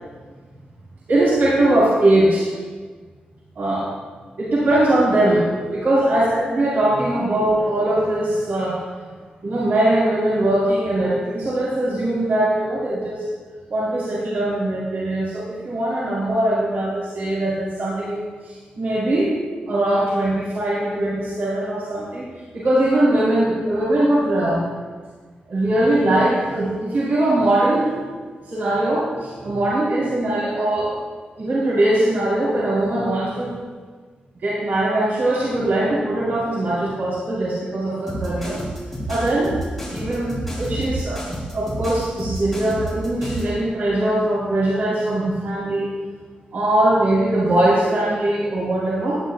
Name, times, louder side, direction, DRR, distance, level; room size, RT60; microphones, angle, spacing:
voice 1, 1.1-2.5 3.6-3.9 4.4-8.8 9.4-13.3 13.7-19.3 19.7-22.2 22.5-24.6 25.5-27.9 28.5-30.9 31.4-33.5 34.4-38.6 39.1-39.5 39.9-41.2 41.5-45.9 46.5-49.2, right 1 dB, 80° right, -8 dB, 4.0 m, -21 dB
sound 1, 38.1-43.5, right 1 dB, 5° left, 3.6 m, -29 dB
18.0 x 11.5 x 2.3 m, 1.5 s
wide cardioid pair, 160°, 3 cm